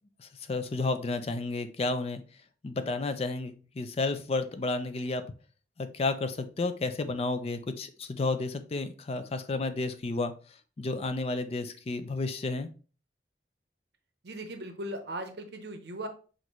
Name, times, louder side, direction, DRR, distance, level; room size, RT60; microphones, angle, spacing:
voice 1, 0.2-2.2 2.6-5.2 5.8-10.3 10.8-12.7, left 3 dB, 35° left, 10 dB, 0.4 m, -31 dB
voice 2, 14.2-16.1, right 1 dB, 65° right, 6 dB, 0.8 m, -38 dB
6.0 x 2.6 x 3.0 m, 0.37 s
head